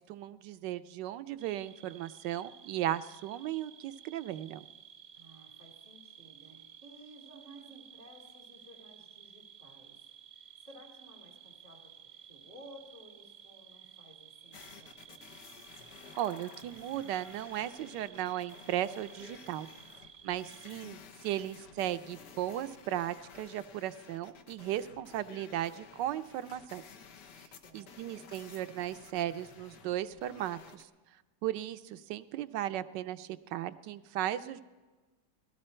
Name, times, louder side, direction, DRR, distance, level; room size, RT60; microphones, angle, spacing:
voice 1, 0.0-4.6 16.2-19.7 20.2-26.8 27.7-30.9 31.4-34.6, right 12 dB, 90° right, 12 dB, 1.3 m, -36 dB
sound 1, 1.4-20.8, right 9 dB, 60° right, 0.4 m, -55 dB
voice 2, 5.1-10.0 10.6-11.9 12.2-15.3 27.6-28.3, right 1 dB, 20° right, -2 dB, 3.6 m, -55 dB
sound 2, 14.5-30.8, left 6 dB, 75° left, 1.6 m, -54 dB
19.5 x 13.0 x 4.4 m, 1.3 s
omnidirectional pair, 1.8 m